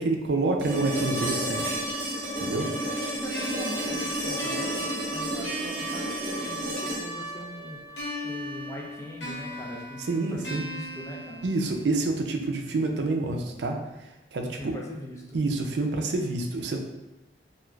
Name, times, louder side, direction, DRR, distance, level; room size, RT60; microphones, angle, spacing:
voice 1, 0.0-1.8 2.4-2.7 10.1-10.6 11.4-14.8 15.3-16.8, right 3 dB, 75° right, 3 dB, 0.4 m, -28 dB
sound 1, 0.6-8.7 10.8-10.9, right 1 dB, 50° right, 0.8 m, -32 dB
voice 2, 2.5-11.5 14.5-15.4, left 1 dB, 15° left, -2 dB, 0.4 m, -41 dB
sound 2, 3.3-7.0 8.0-12.0, right 1 dB, 80° left, 0.9 m, -38 dB
3.1 x 2.4 x 2.3 m, 1.0 s
head